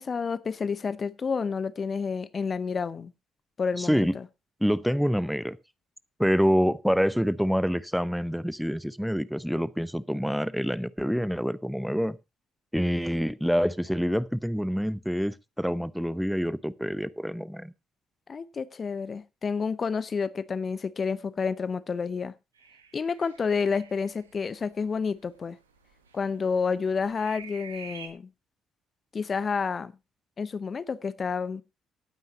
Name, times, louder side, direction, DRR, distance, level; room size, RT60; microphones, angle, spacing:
voice 1, 0.0-3.1 3.6-4.2 18.3-22.3 22.9-25.6 26.1-28.3 29.1-29.9 30.4-31.6, left 5 dB, 40° left, 0.7 m, -29 dB
voice 2, 3.8-4.1 4.6-5.6 6.2-12.2 12.7-17.7, equal, ahead, 0.8 m, -26 dB
sound 1, 22.6-28.1, right 6 dB, 90° right, 1.2 m, -48 dB
17.5 x 9.2 x 2.9 m
hypercardioid pair, 45°, 0 cm